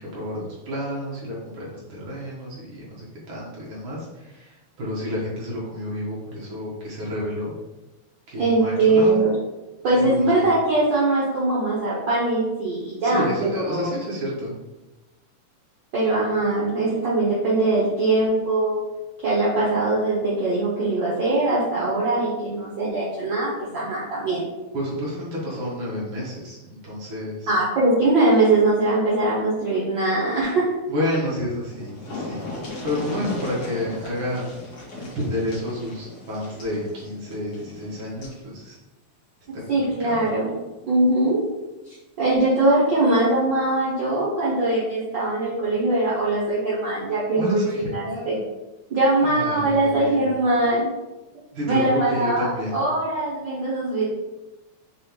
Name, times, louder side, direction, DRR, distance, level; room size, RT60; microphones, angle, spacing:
voice 1, 0.0-7.5 8.3-9.2 10.0-10.5 13.0-14.5 24.7-27.5 30.9-32.5 32.8-34.5 34.9-38.8 39.5-40.3 47.4-48.4 49.2-50.2 51.5-52.8, equal, 55° right, -5 dB, 1.5 m, -30 dB
voice 2, 8.4-9.3 9.8-13.9 15.9-18.8 19.2-24.4 27.5-30.7 39.7-40.5 40.9-41.4 42.2-47.6 47.9-48.4 48.9-50.9 51.6-54.0, right 2 dB, 75° right, -7 dB, 1.0 m, -21 dB
sound 1, 31.3-31.4 31.6-38.4 39.7-39.9 40.3-40.4, left 2 dB, 60° left, 1.1 m, -37 dB
5.4 x 3.1 x 3.0 m, 1.0 s
omnidirectional pair, 3.4 m